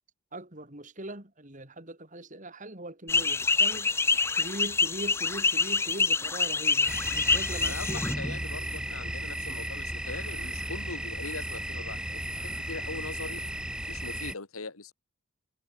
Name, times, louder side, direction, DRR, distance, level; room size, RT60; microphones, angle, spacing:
voice 1, 0.3-3.9 4.3-8.0, right 1 dB, 35° right, 3.9 m, -41 dB
sound 1, 3.1-8.1, left 4 dB, 10° left, 0.3 m, -26 dB
sound 2, 6.9-14.3, right 1 dB, 5° right, 1.3 m, -34 dB
voice 2, 7.6-12.2 12.6-13.4 13.9-14.9, left 3 dB, 85° left, 2.1 m, -41 dB
head